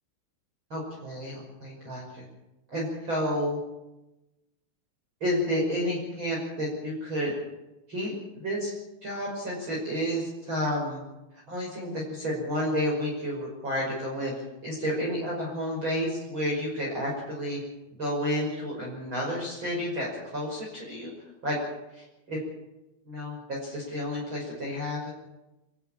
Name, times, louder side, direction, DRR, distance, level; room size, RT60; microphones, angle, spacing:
voice 1, 0.7-2.2 2.7-3.6 5.2-7.3 7.9-8.7 9.0-11.0 11.5-14.3 14.6-17.6 18.0-21.1 21.4-21.6 21.9-22.4 23.1-25.1, equal, 25° right, -4 dB, 6.1 m, -31 dB
26.0 x 13.5 x 8.8 m, 0.98 s
omnidirectional pair, 5.5 m